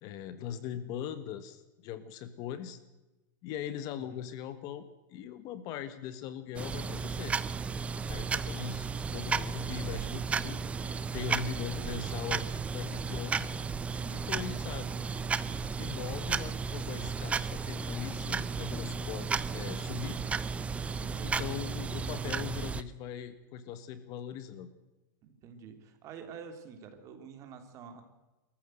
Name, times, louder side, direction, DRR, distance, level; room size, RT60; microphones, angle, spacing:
voice 1, 0.0-2.8 3.4-7.4 8.0-10.6 11.1-13.5 14.1-15.0 15.8-20.2 21.2-24.7, left 10 dB, 40° left, 12 dB, 1.6 m, -40 dB
sound 1, 6.6-22.8, right 5 dB, 10° right, 0.7 m, -34 dB
voice 2, 20.9-21.6 25.2-28.0, right 6 dB, 30° right, 6 dB, 3.3 m, -48 dB
23.0 x 14.5 x 7.9 m, 1.1 s
supercardioid pair, 155°, 10 cm